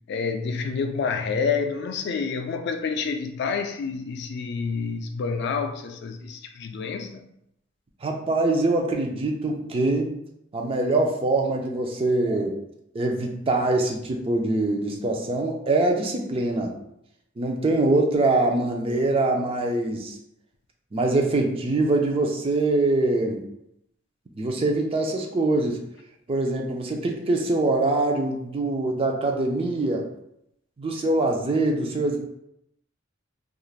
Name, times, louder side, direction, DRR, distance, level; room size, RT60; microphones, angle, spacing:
voice 1, 0.1-7.2, left 5 dB, 60° left, 0.3 m, -28 dB
voice 2, 8.0-10.1 10.5-12.6 12.9-16.7 17.4-20.2 20.9-23.4 24.4-25.8 26.3-30.1 30.8-32.2, right 2 dB, 30° right, 0.4 m, -23 dB
3.2 x 2.5 x 2.4 m
head